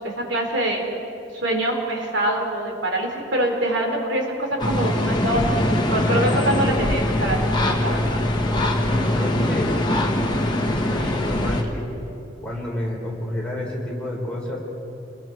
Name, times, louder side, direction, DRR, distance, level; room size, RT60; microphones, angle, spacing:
voice 1, 0.0-0.8 1.3-5.6 5.9-8.2, right 1 dB, 65° right, 1 dB, 3.4 m, -24 dB
sound 1, 4.6-11.6, left 1 dB, 20° left, 1.6 m, -22 dB
voice 2, 8.7-9.8 10.7-11.9 12.4-14.6, left 1 dB, 5° left, -4 dB, 3.8 m, -29 dB
29.0 x 21.0 x 4.6 m, 2.8 s
head